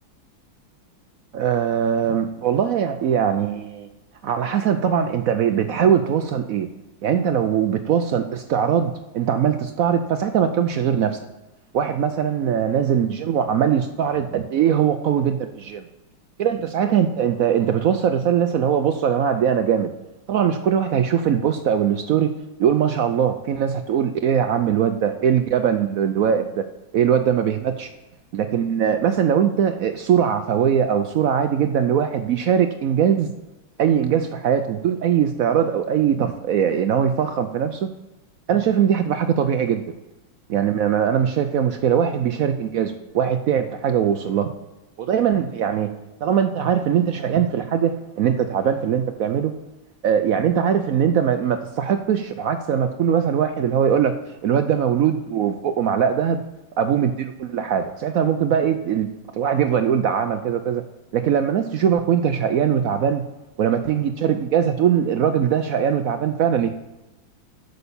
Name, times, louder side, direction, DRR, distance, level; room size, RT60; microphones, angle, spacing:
voice 1, 1.3-3.9 4.2-6.7 7.0-11.2 11.7-15.9 16.4-19.9 20.3-22.3 22.6-26.7 26.9-27.9 28.3-33.3 33.8-37.9 38.5-39.8 40.5-44.5 45.0-45.9 46.2-49.5 50.0-54.1 54.4-56.4 56.8-60.8 61.1-63.2 63.6-66.7, right 8 dB, 80° right, 8 dB, 0.7 m, -21 dB
8.4 x 6.8 x 6.9 m, 1.0 s
omnidirectional pair, 2.2 m